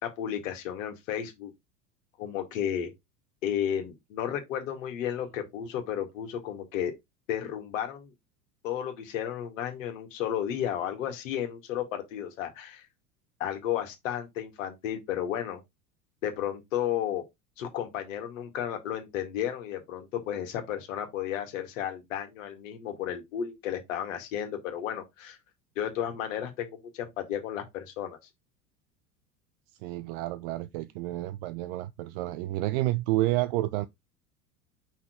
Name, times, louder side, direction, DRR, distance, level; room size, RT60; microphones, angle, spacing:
voice 1, 0.0-1.5 2.2-2.9 3.4-6.9 7.3-8.1 8.6-12.9 13.4-15.6 16.2-17.2 17.6-25.4 25.8-28.2, left 10 dB, 60° left, 1.9 m, -33 dB
voice 2, 29.8-33.9, right 17 dB, 40° right, 0.5 m, -30 dB
5.9 x 3.6 x 5.0 m
figure-of-eight pair, 75°, 44 cm